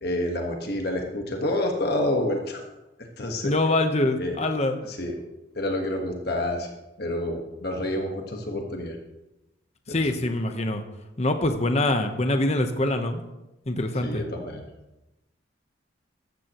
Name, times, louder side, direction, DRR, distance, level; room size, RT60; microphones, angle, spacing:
voice 1, 0.0-2.6 3.2-3.5 4.2-4.4 4.8-5.2 5.5-6.7 7.0-9.0 9.9-10.1 14.0-14.6, left 1 dB, 50° left, 2 dB, 1.4 m, -28 dB
voice 2, 3.4-4.8 9.9-10.8 11.2-13.2 13.7-14.2, left 2 dB, 35° left, 6 dB, 1.0 m, -24 dB
14.5 x 13.5 x 3.0 m, 0.98 s
head